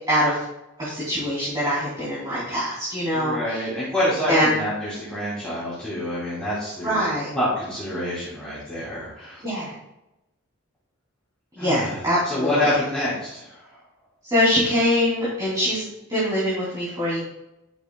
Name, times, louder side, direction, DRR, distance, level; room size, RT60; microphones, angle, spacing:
voice 1, 0.1-0.4 0.8-3.7 4.3-4.6 6.8-7.3 9.4-9.7 11.6-12.7 14.3-17.2, equal, 20° right, -9 dB, 3.0 m, -23 dB
voice 2, 3.1-7.0 7.3-9.4 11.6-12.0 12.2-13.6, left 1 dB, 5° left, -11 dB, 3.0 m, -27 dB
11.5 x 7.8 x 2.3 m, 0.89 s
head